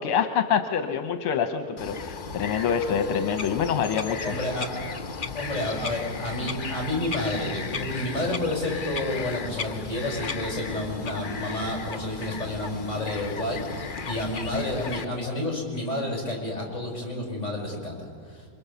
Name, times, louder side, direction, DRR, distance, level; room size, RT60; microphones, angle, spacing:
voice 1, 0.0-4.3, left 7 dB, 80° left, 7 dB, 1.9 m, -26 dB
Bird vocalization bird call bird song, 1.8-15.0, left 5 dB, 55° left, 0.5 m, -35 dB
voice 2, 4.2-5.0 5.3-18.5, left 1 dB, 30° left, 1 dB, 6.2 m, -30 dB
27.5 x 24.5 x 7.0 m, 2.2 s
omnidirectional pair, 2.4 m